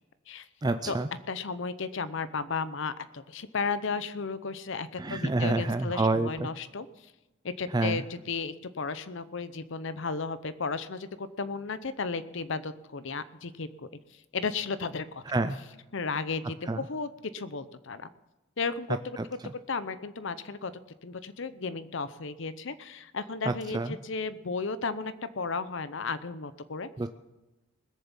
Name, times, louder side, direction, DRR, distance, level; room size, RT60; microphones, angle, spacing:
voice 1, 0.6-1.1 5.0-6.5 7.7-8.0 15.3-15.6 16.7-16.8 19.2-19.3 23.5-24.0 27.0-27.1, right 2 dB, 20° right, 9 dB, 0.4 m, -28 dB
voice 2, 1.3-6.9 7.4-13.9 14.3-15.2 15.9-18.1 18.6-19.2 19.7-26.9, left 4 dB, 60° left, 14 dB, 0.7 m, -34 dB
20.5 x 7.0 x 7.3 m, 1.0 s
head